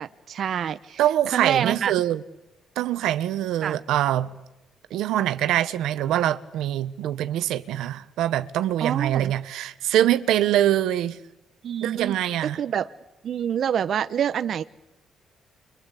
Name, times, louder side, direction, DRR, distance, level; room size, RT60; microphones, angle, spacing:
voice 1, 0.0-1.0 1.3-1.9 3.6-3.8 8.8-9.3 11.6-12.9 13.2-14.6, right 8 dB, 60° right, 0.9 m, -27 dB
voice 2, 1.0-2.2 2.8-4.3 4.9-11.2 11.8-12.6, right 12 dB, 85° right, 1.2 m, -24 dB
28.5 x 24.0 x 8.4 m
cardioid pair, 90°, 0 cm